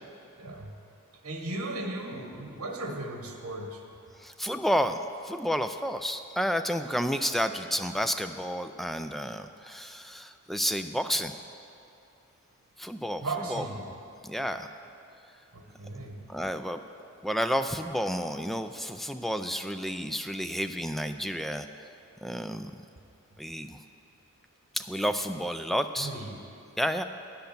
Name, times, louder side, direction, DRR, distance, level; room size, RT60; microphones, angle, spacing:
voice 1, 0.4-0.7 1.2-3.8 13.2-13.9 15.5-16.2 26.0-26.4, right 2 dB, 75° right, 3 dB, 1.3 m, -36 dB
voice 2, 4.2-5.0 5.2-11.3 12.8-13.2 13.5-13.6 14.2-14.7 16.3-16.8 17.2-21.7 22.2-22.8 23.4-23.8 24.7-26.1 26.8-27.0, equal, ahead, 8 dB, 0.3 m, -30 dB
10.5 x 8.0 x 6.8 m, 2.7 s
head